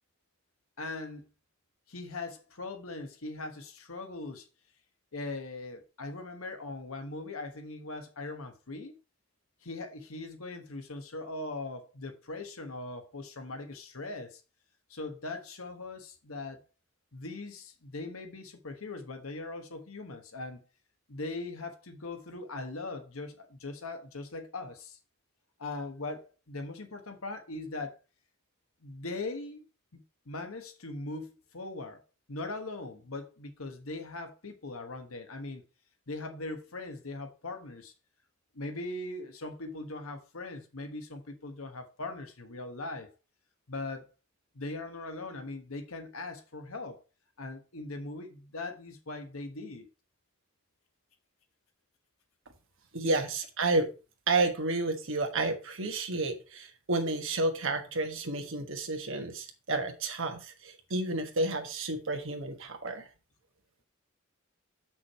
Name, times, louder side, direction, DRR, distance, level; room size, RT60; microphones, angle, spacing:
voice 1, 0.8-1.3 1.9-4.5 5.1-9.0 9.6-14.4 14.9-16.6 17.1-20.6 21.1-25.0 25.6-28.0 28.8-29.7 29.9-32.0 32.3-35.6 36.1-37.9 38.5-43.1 43.7-44.1 44.5-47.0 47.4-49.9 53.0-53.1, left 2 dB, 75° left, 1.3 m, -40 dB
voice 2, 52.9-53.9 54.3-63.1, right 2 dB, 65° right, 1.4 m, -31 dB
6.4 x 6.1 x 4.2 m
head